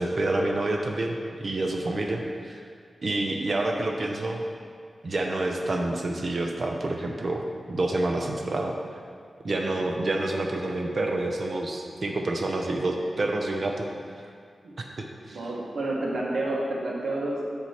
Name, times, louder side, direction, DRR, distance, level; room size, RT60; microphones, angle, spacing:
voice 1, 0.0-2.6 3.0-4.4 5.0-8.7 9.4-13.9 14.8-15.4, right 2 dB, 50° right, 2 dB, 0.5 m, -28 dB
voice 2, 15.3-17.4, right 2 dB, 90° right, -4 dB, 1.3 m, -29 dB
8.5 x 3.0 x 5.7 m, 2.1 s
wide cardioid pair, 135°, 0 cm